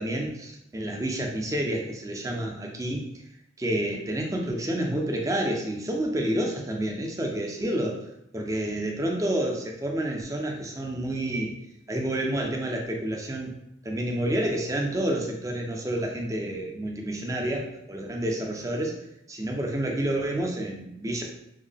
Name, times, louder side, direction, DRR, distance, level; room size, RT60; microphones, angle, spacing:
voice 1, 0.0-3.0 3.6-8.0 8.3-11.5 11.9-13.5 13.8-19.0 19.3-21.2, right 1 dB, 15° right, 0 dB, 0.4 m, -29 dB
3.6 x 2.1 x 3.5 m, 0.82 s
head